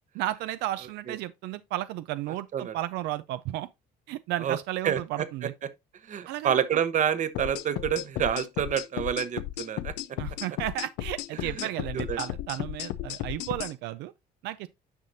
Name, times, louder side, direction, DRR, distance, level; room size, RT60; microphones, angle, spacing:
voice 1, 0.1-3.7 4.1-5.5 6.3-6.8 10.2-14.1 14.4-14.7, right 14 dB, 85° right, 0.4 m, -33 dB
voice 2, 4.8-5.3 6.1-9.9 11.9-12.2, right 9 dB, 45° right, 0.9 m, -28 dB
sound 1, 7.3-13.7, left 14 dB, 90° left, 0.5 m, -34 dB
9.6 x 5.8 x 2.7 m
cardioid pair, 110°, 17 cm